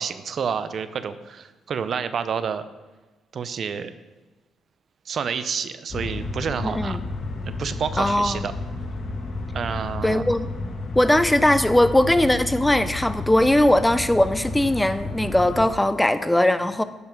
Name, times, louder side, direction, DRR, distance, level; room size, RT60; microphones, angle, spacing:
voice 1, 0.0-2.6 3.3-3.9 5.1-7.0 7.4-8.5 9.5-10.2, right 6 dB, 55° right, 12 dB, 0.6 m, -29 dB
sound 1, 5.9-15.7, left 2 dB, 50° left, 1.4 m, -32 dB
voice 2, 6.6-7.0 8.0-8.5 10.0-10.5 11.0-16.8, left 1 dB, 10° left, 12 dB, 0.5 m, -20 dB
10.5 x 5.5 x 5.2 m, 1.2 s
cardioid pair, 90°, 0 cm